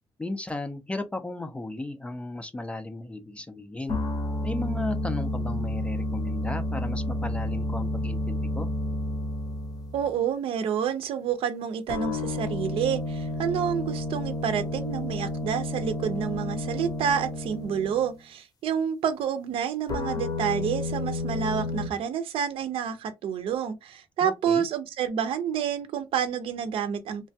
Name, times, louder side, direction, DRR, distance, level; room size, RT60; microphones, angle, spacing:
voice 1, 0.2-4.0 4.4-8.7 24.2-24.7, left 2 dB, 10° left, 0.3 m, -35 dB
sound 1, 3.9-10.2 11.9-18.2 19.9-21.9, left 2 dB, 45° left, 0.7 m, -31 dB
voice 2, 9.9-27.3, right 8 dB, 75° right, 0.5 m, -29 dB
3.2 x 2.2 x 2.6 m
cardioid pair, 145°, 9 cm